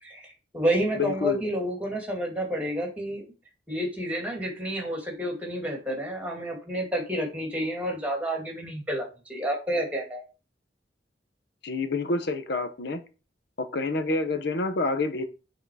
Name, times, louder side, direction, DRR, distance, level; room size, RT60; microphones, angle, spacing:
voice 1, 0.0-3.3 3.7-10.2, equal, 10° right, 0 dB, 2.3 m, -30 dB
voice 2, 1.0-1.4 11.6-13.0 13.6-15.3, left 3 dB, 65° left, 9 dB, 0.8 m, -28 dB
8.0 x 3.8 x 4.7 m, 0.32 s
head